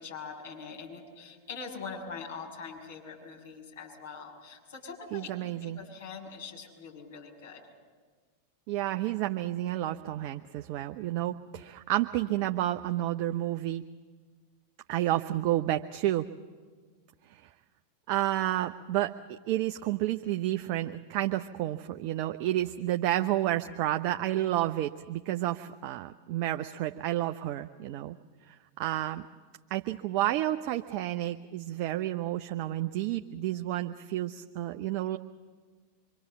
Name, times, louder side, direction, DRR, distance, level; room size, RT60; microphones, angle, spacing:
voice 1, 0.0-7.6, left 5 dB, 60° left, 1 dB, 6.4 m, -43 dB
voice 2, 5.1-5.8 8.7-13.8 14.9-16.3 17.3-17.5 18.1-28.2 28.5-29.3 29.7-35.2, right 14 dB, 45° right, 7 dB, 0.7 m, -30 dB
26.0 x 24.0 x 7.3 m, 1.5 s
figure-of-eight pair, 90°, 0 cm